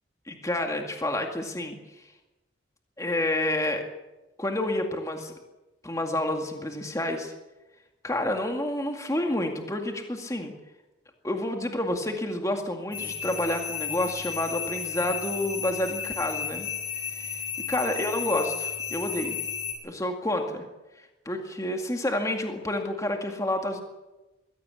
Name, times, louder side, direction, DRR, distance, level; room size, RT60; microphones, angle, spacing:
voice 1, 0.3-1.8 3.0-3.8 4.4-5.3 5.8-7.3 8.0-10.5 11.2-16.7 17.2-19.4 19.8-20.6 21.3-23.8, left 1 dB, 15° left, 4 dB, 2.1 m, -29 dB
sound 1, 12.9-19.7, left 7 dB, 80° left, 6.8 m, -33 dB
22.0 x 16.0 x 8.6 m, 1.1 s
head